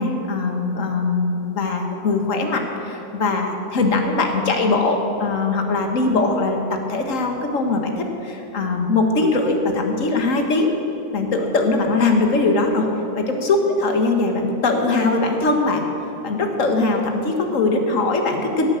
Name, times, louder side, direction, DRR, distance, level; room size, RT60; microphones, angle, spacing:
voice 1, 0.0-10.7 11.1-12.9 13.2-15.9 16.2-18.7, left 3 dB, 50° left, 4 dB, 1.8 m, -21 dB
17.0 x 8.7 x 7.7 m, 3.0 s
omnidirectional pair, 1.9 m